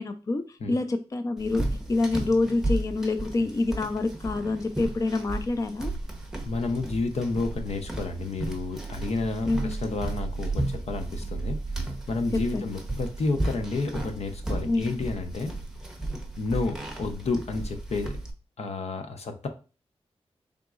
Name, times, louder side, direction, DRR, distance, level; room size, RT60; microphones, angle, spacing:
voice 1, 0.0-0.4 0.7-1.6 1.9-5.9 9.5-9.8 12.5-12.6 14.7-14.9, left 3 dB, 30° left, 8 dB, 0.4 m, -26 dB
sound 1, 1.4-18.3, right 2 dB, 5° right, 0.8 m, -34 dB
voice 2, 6.4-11.6 12.1-15.5 16.4-18.2 18.6-19.5, left 3 dB, 75° left, 6 dB, 0.7 m, -30 dB
3.9 x 3.6 x 2.4 m, 0.34 s
wide cardioid pair, 90°, 11 cm